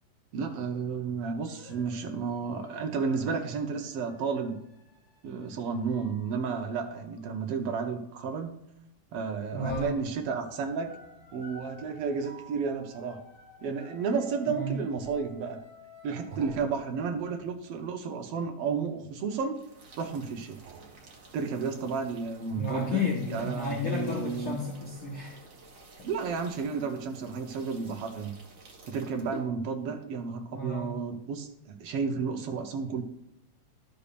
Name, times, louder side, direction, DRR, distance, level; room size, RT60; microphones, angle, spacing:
voice 1, 0.3-4.6 5.2-8.6 9.1-10.9 11.3-13.2 13.6-15.6 16.0-19.6 20.0-20.6 21.3-24.6 26.0-28.3 28.9-33.0, right 5 dB, 65° right, 5 dB, 1.6 m, -32 dB
sound 1, 1.4-8.4 9.2-9.5 9.9-17.8, left 3 dB, 70° left, 2.9 m, -54 dB
sound 2, 8.5-8.7 9.6-14.3 15.0-15.6 16.3-19.3 20.5-22.5 23.3-24.7 25.2-25.3, right 5 dB, 85° right, 2.7 m, -53 dB
voice 2, 9.5-9.9 14.5-14.7 22.6-25.4 30.5-31.0, left 3 dB, 55° left, -4 dB, 1.9 m, -32 dB
sound 3, 19.5-29.5, right 4 dB, 40° right, 1.2 m, -51 dB
12.5 x 6.8 x 2.5 m, 0.83 s
omnidirectional pair, 3.3 m